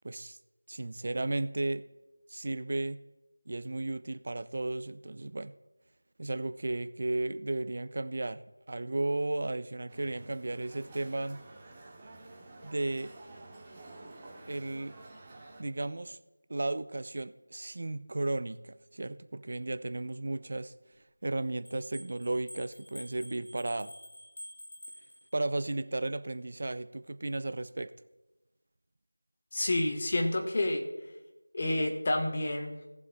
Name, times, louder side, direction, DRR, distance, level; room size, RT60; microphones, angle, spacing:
voice 1, 0.0-0.4 0.7-1.8 2.3-3.0 3.5-5.5 6.2-8.4 8.7-11.4 12.6-13.1 14.5-15.0 15.6-16.2 16.5-20.7 21.2-23.9 25.3-27.9, right 2 dB, 40° right, 14 dB, 0.4 m, -34 dB
sound 1, 9.9-15.6, right 2 dB, 15° right, 1.0 m, -50 dB
sound 2, 21.6-25.6, equal, 45° left, 1.6 m, -49 dB
voice 2, 29.5-30.8 31.5-32.8, left 1 dB, 30° left, 3 dB, 1.2 m, -29 dB
18.5 x 7.1 x 2.2 m, 1.1 s
figure-of-eight pair, 170°, 0 cm